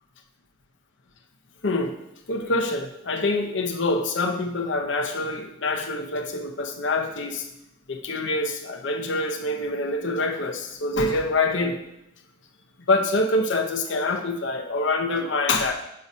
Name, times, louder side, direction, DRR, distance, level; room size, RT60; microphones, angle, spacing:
voice 1, 1.6-1.9 2.3-7.5 7.9-11.8 12.9-15.7, left 2 dB, 70° left, 3 dB, 0.8 m, -25 dB
7.6 x 2.8 x 5.3 m, 0.79 s
head